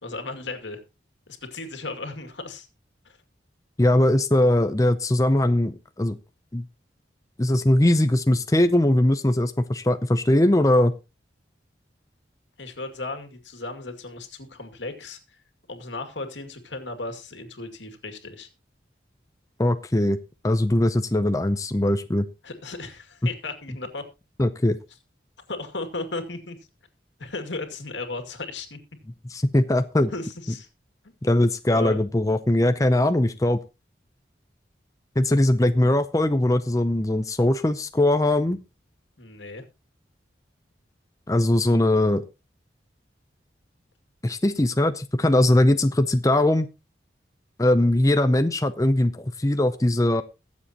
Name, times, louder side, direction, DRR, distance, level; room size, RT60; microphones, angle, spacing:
voice 1, 0.0-0.8 1.3-2.7 3.0-3.2 12.6-15.4 15.7-18.5 22.4-24.0 25.5-26.6 27.2-28.8 30.1-30.7 31.7-32.0 39.2-39.6, left 3 dB, 85° left, 6 dB, 2.3 m, -35 dB
voice 2, 3.8-6.2 6.5-6.6 7.4-10.9 19.6-20.2 20.4-22.3 24.4-24.8 29.3-30.1 31.2-33.6 35.2-38.6 41.3-42.2 44.2-46.7 47.6-50.2, left 1 dB, 20° left, 9 dB, 0.6 m, -20 dB
22.0 x 7.5 x 2.9 m, 0.27 s
head